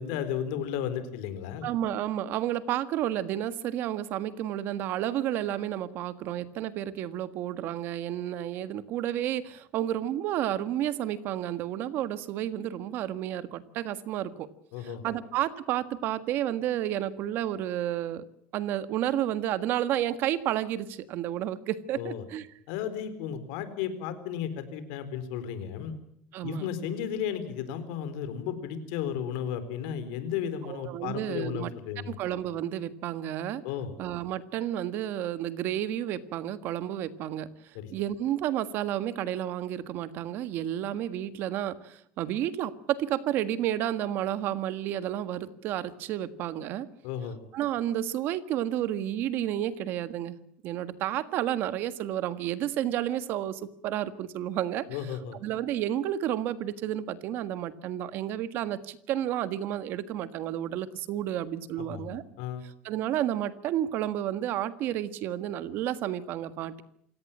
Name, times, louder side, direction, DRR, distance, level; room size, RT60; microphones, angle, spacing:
voice 1, 0.0-1.7 14.7-15.2 21.9-22.2 22.7-25.9 26.4-32.2 33.6-33.9 37.7-37.9 47.0-47.4 54.9-55.4 61.8-62.6, left 8 dB, 85° left, 11 dB, 4.1 m, -34 dB
voice 2, 1.6-14.5 14.8-18.2 18.5-22.5 26.3-26.7 30.7-31.7 32.1-33.6 34.0-37.5 37.9-46.9 47.5-50.4 50.6-54.9 55.4-62.2 62.8-66.7, right 12 dB, 55° right, 13 dB, 1.6 m, -31 dB
27.5 x 17.5 x 7.3 m, 0.71 s
cardioid pair, 145°, 4 cm